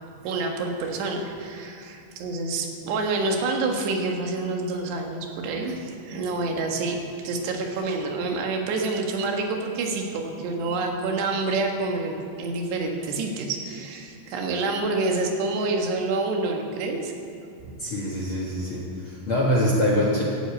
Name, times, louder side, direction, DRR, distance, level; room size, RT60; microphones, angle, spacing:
voice 1, 0.2-17.1 17.6-17.7, right 3 dB, 85° right, 2 dB, 3.7 m, -27 dB
voice 2, 17.8-20.2, left 1 dB, 50° left, -3 dB, 1.6 m, -24 dB
14.5 x 9.2 x 8.8 m, 2.6 s
omnidirectional pair, 4.7 m